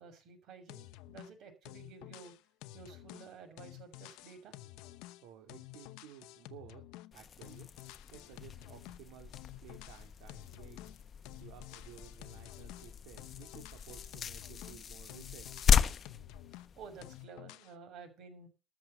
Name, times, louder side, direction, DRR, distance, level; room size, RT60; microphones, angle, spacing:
voice 1, 0.0-2.3 2.7-4.5 16.8-18.5, right 5 dB, 50° right, 6 dB, 6.4 m, -52 dB
sound 1, 0.7-1.4 1.7-7.2 7.4-9.0 9.3-11.0 11.3-14.8 15.1-16.7 17.0-17.7, left 16 dB, 70° left, 0.9 m, -51 dB
voice 2, 5.0-6.9 7.1-7.7 8.1-11.0 11.4-15.8, right 10 dB, 75° right, 4 dB, 2.8 m, -55 dB
sound 2, 7.1-17.2, left 7 dB, 30° left, 0.9 m, -36 dB
13.5 x 7.4 x 8.1 m, 0.32 s
cardioid pair, 150°, 0 cm